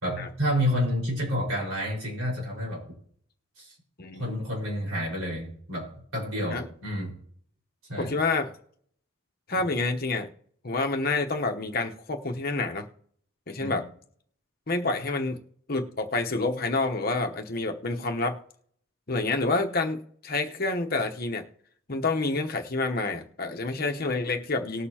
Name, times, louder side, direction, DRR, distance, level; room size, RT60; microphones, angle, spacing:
voice 1, 0.0-2.8 3.6-3.7 4.2-7.1 7.9-8.1 13.6-13.8, equal, 85° right, -3 dB, 4.9 m, -29 dB
voice 2, 4.0-4.4 6.5-6.7 8.0-8.5 9.5-10.3 10.6-12.9 13.5-13.8 14.7-15.4 15.7-18.4 19.1-21.4 21.9-24.9, left 3 dB, 45° left, 4 dB, 1.0 m, -28 dB
19.5 x 6.7 x 2.9 m, 0.62 s
head